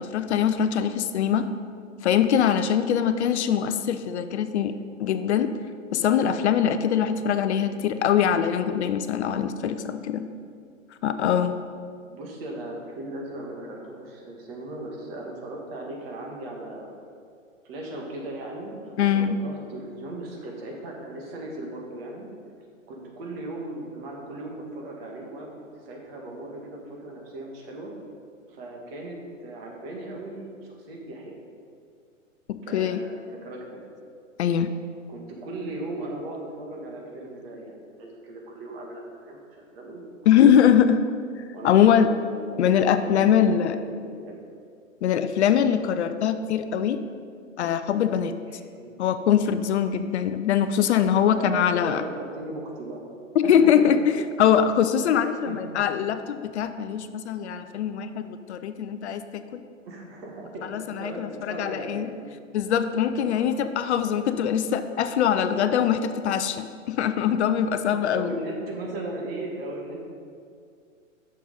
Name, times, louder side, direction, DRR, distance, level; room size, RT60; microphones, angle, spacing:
voice 1, 0.0-1.5 2.0-5.5 5.9-10.3 11.0-11.5 19.0-19.4 32.5-33.0 34.4-34.7 40.3-41.1 41.6-42.1 42.6-43.8 45.0-47.0 47.6-48.3 49.0-52.0 53.4-59.6 60.6-62.1 62.5-68.4, left 8 dB, 60° left, 10 dB, 0.5 m, -22 dB
voice 2, 12.1-17.0 17.6-22.3 22.9-27.9 28.5-31.4 32.6-33.8 35.1-40.4 41.5-42.6 43.0-44.4 48.5-48.9 51.2-53.1 53.4-53.8 55.4-55.8 59.8-60.7 61.0-61.2 61.5-62.1 63.1-63.7 65.6-65.9 67.9-70.0, right 2 dB, 45° right, -1 dB, 2.0 m, -38 dB
6.7 x 6.4 x 5.2 m, 2.2 s
hypercardioid pair, 130°, 39 cm